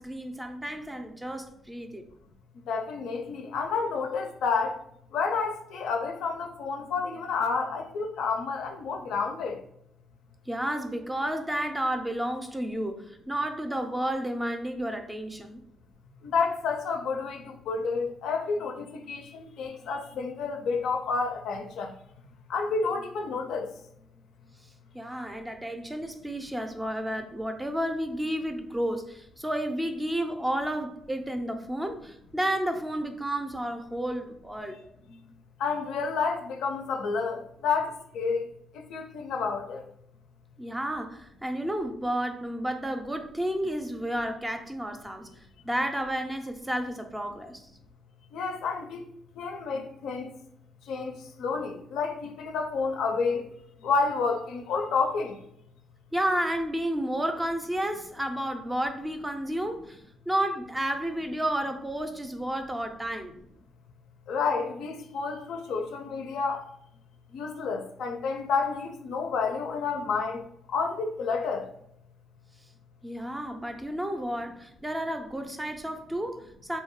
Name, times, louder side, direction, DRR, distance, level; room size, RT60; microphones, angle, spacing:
voice 1, 0.0-2.0 10.5-15.6 24.9-34.8 40.6-45.3 45.6-47.6 56.1-60.0 60.3-63.4 73.0-76.8, right 1 dB, 10° right, 0.4 m, -31 dB
voice 2, 2.6-4.8 5.1-9.6 16.2-21.9 22.5-23.7 35.6-38.5 38.7-39.8 48.3-49.0 49.4-50.3 50.9-53.4 53.8-55.3 64.3-66.6 67.3-70.5 70.7-71.7, left 4 dB, 80° left, 0.4 m, -30 dB
2.8 x 2.2 x 3.0 m
cardioid pair, 90°, 0 cm